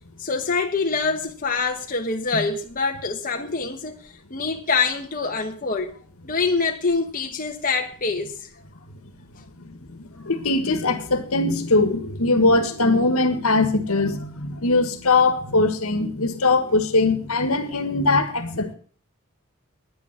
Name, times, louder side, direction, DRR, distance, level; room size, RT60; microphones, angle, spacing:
voice 1, 0.2-5.9 6.2-8.5 9.4-9.5, left 4 dB, 40° left, 1.3 m, -25 dB
voice 2, 10.0-18.7, left 3 dB, 75° left, 1.7 m, -21 dB
10.5 x 9.5 x 7.2 m
head